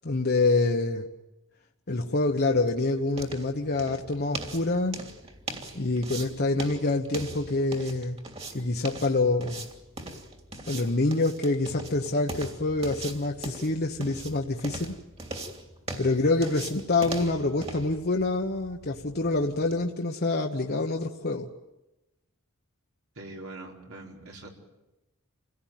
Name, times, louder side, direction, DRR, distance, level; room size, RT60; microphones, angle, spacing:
voice 1, 0.0-1.1 1.9-5.0 5.7-8.2 8.5-9.7 10.7-14.9 16.0-21.5, left 2 dB, 50° left, 2 dB, 1.2 m, -26 dB
sound 1, 2.0-19.8, right 2 dB, 30° right, 2.9 m, -41 dB
voice 2, 23.2-24.5, right 2 dB, 75° right, 0 dB, 4.6 m, -42 dB
27.5 x 17.0 x 9.3 m, 1.0 s
head